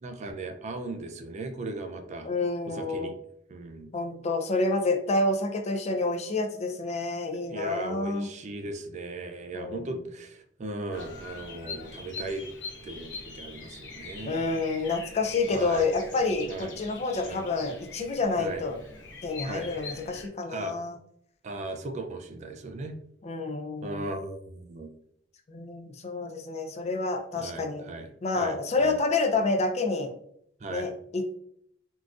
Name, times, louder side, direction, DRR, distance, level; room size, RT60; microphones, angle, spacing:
voice 1, 0.0-2.3 2.7-3.2 3.5-4.0 7.4-12.4 12.8-14.5 15.5-15.9 16.5-16.8 17.2-17.5 18.4-18.6 19.5-19.7 20.5-20.8 21.4-23.0 23.8-24.9 27.4-29.0 30.6-30.9, right 2 dB, 40° right, 6 dB, 0.3 m, -37 dB
voice 2, 2.2-3.1 3.9-8.3 9.5-9.9 14.3-18.8 19.2-21.0 23.2-24.1 25.5-27.8 28.2-30.1 30.7-31.4, left 3 dB, 35° left, 5 dB, 0.4 m, -28 dB
Bird vocalization bird call bird song, 10.9-20.3, left 4 dB, 70° left, 0.7 m, -43 dB
3.7 x 2.4 x 2.4 m, 0.68 s
head